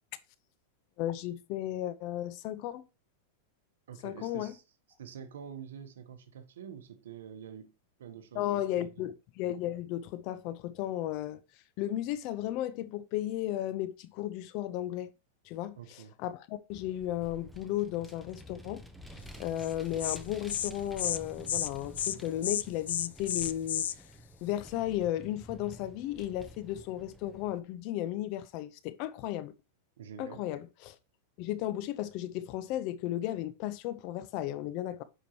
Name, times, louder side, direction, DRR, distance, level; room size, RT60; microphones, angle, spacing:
voice 1, 1.0-2.9 4.0-4.5 8.3-11.4 11.8-15.1 15.4-18.8 19.1-23.9 24.4-29.5 30.2-31.0 31.4-35.0, left 13 dB, 50° left, 0.8 m, -34 dB
voice 2, 3.9-4.6 5.0-7.7 8.0-9.1 15.8-16.1 30.0-30.5, right 8 dB, 85° right, 1.0 m, -47 dB
Vehicle, 16.7-27.6, equal, ahead, 0.9 m, -50 dB
Insect, 19.6-19.7 20.0-20.2 20.5-20.7 21.0-21.2 21.5-21.7 22.0-22.2 22.4-23.9, left 10 dB, 85° left, 0.4 m, -31 dB
9.8 x 5.0 x 2.9 m
hypercardioid pair, 130°, 0 cm